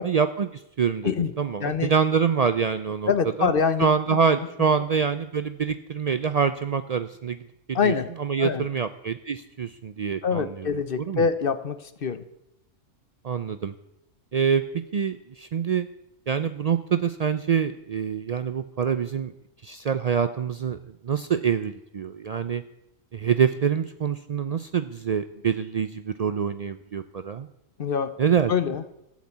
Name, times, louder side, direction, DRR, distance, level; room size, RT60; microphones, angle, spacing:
voice 1, 0.0-1.1 1.4-3.1 3.4-3.5 3.8-7.4 7.7-10.7 11.0-11.2 13.2-13.7 14.3-15.9 16.3-19.3 19.6-20.8 21.0-22.6 23.1-27.5 28.2-28.5, right 7 dB, 70° right, 11 dB, 0.3 m, -25 dB
voice 2, 1.6-1.9 3.1-3.9 7.7-8.1 8.4-8.7 10.2-12.2 27.8-28.1 28.5-28.8, left 6 dB, 50° left, 12 dB, 1.0 m, -25 dB
14.0 x 8.4 x 8.4 m, 0.84 s
omnidirectional pair, 1.4 m